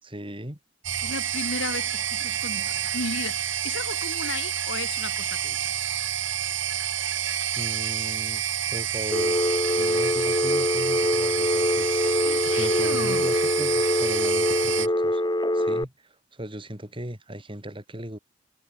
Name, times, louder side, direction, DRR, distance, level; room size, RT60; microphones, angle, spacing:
voice 1, 0.0-0.6 7.5-8.4 8.7-9.4 9.7-12.3 12.6-15.2 15.5-18.2, right 1 dB, 25° right, 4.6 m, -37 dB
sound 1, 0.8-14.9, right 10 dB, 85° right, 3.9 m, -29 dB
voice 2, 1.0-5.7 12.2-13.3, left 3 dB, 85° left, 3.5 m, -34 dB
Telephone, 9.1-15.8, left 1 dB, 20° left, 3.6 m, -24 dB
head